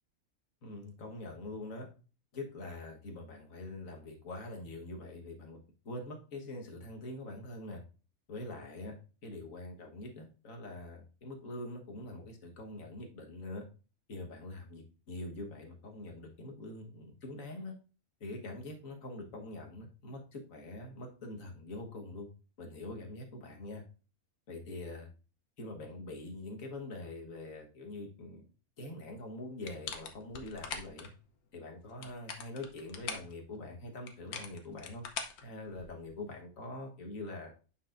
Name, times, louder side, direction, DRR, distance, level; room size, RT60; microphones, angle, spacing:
voice 1, 0.6-1.9 2.3-7.8 8.3-8.9 9.2-13.6 14.1-17.7 18.2-22.3 22.6-23.8 24.5-25.1 25.6-28.4 28.8-31.1 31.5-35.0 35.4-37.5, left 2 dB, 65° left, 2 dB, 1.8 m, -44 dB
sound 1, 29.6-31.1 31.9-33.3 34.1-36.1, left 6 dB, 85° left, 1.4 m, -42 dB
9.1 x 5.8 x 2.5 m, 0.35 s
omnidirectional pair, 1.5 m